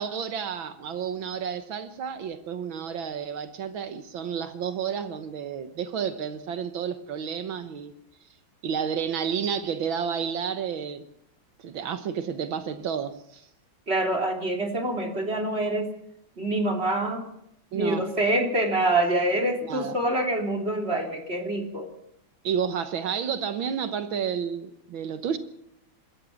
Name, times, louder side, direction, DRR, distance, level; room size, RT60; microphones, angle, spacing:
voice 1, 0.0-7.9 8.6-11.0 11.6-13.5 17.7-18.1 19.6-19.9 22.4-25.4, right 7 dB, 75° right, 1.9 m, -31 dB
voice 2, 13.9-15.9 16.4-17.3 17.7-21.9, right 1 dB, 30° right, 3.6 m, -26 dB
26.0 x 13.5 x 7.2 m
omnidirectional pair, 2.2 m